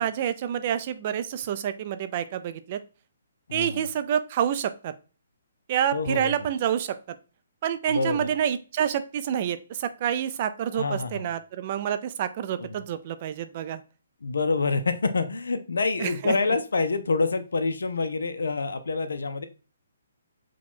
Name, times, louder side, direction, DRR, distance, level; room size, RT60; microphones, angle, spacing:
voice 1, 0.0-2.8 3.5-4.9 5.7-7.2 7.6-13.8 16.0-16.4, right 9 dB, 40° right, 11 dB, 0.4 m, -28 dB
voice 2, 3.5-3.8 5.9-6.3 7.9-8.3 10.7-11.3 12.6-12.7 14.2-19.5, left 3 dB, 85° left, 9 dB, 0.5 m, -27 dB
4.8 x 2.2 x 3.6 m, 0.35 s
hypercardioid pair, 155°, 0 cm